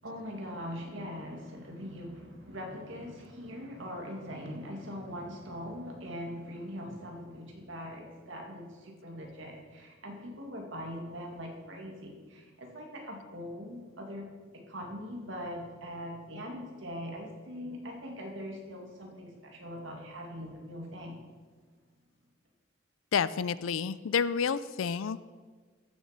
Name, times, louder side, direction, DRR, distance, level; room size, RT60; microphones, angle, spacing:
voice 1, 0.0-21.2, equal, 60° right, 1 dB, 2.2 m, -41 dB
voice 2, 23.1-25.3, left 6 dB, 75° left, 17 dB, 0.4 m, -30 dB
14.0 x 7.2 x 5.1 m, 1.4 s
head